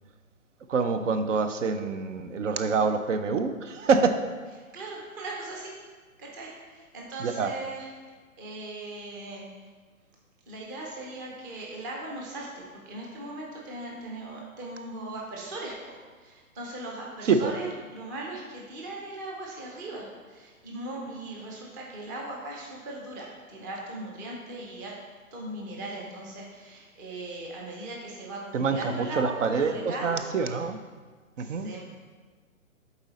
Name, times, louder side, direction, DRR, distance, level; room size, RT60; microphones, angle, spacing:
voice 1, 0.7-4.2 7.2-7.5 17.2-17.5 28.5-30.8 31.4-31.7, right 5 dB, 60° right, 8 dB, 0.6 m, -26 dB
voice 2, 4.7-5.7 6.2-7.9 8.4-9.5 10.5-25.0 25.3-30.2 30.5-30.6 31.4-31.8, right 2 dB, 15° right, -2 dB, 0.6 m, -39 dB
7.8 x 4.1 x 4.0 m, 1.4 s
hypercardioid pair, 150°, 42 cm